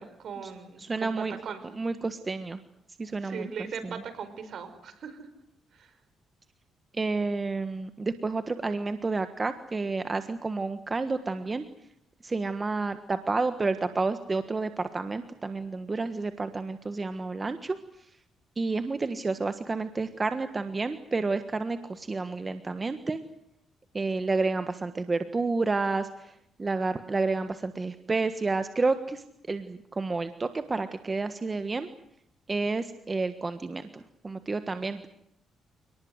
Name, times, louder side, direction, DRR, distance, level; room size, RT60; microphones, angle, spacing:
voice 1, 0.0-1.1 1.4-1.6 3.2-5.3 5.7-6.0, right 6 dB, 60° right, 10 dB, 5.4 m, -39 dB
voice 2, 0.8-1.4 1.7-2.6 3.0-3.5 3.8-3.9 6.9-11.7 12.2-18.1 18.6-23.2 23.9-31.9 32.5-35.1, right 3 dB, 25° right, 9 dB, 1.4 m, -30 dB
28.0 x 19.5 x 8.0 m, 0.77 s
cardioid pair, 90°, 0 cm